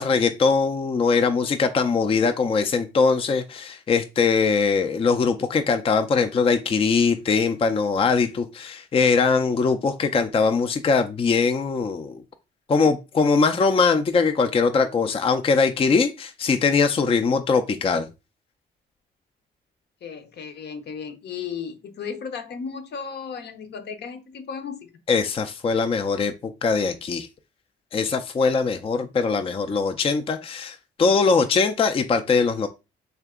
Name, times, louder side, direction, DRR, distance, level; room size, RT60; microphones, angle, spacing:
voice 1, 0.0-12.2 12.7-18.1 25.1-27.3 27.9-32.7, left 4 dB, 30° left, 0.4 m, -21 dB
voice 2, 20.0-24.9, left 6 dB, 60° left, 0.7 m, -35 dB
3.4 x 2.8 x 3.6 m
cardioid pair, 90°, 20 cm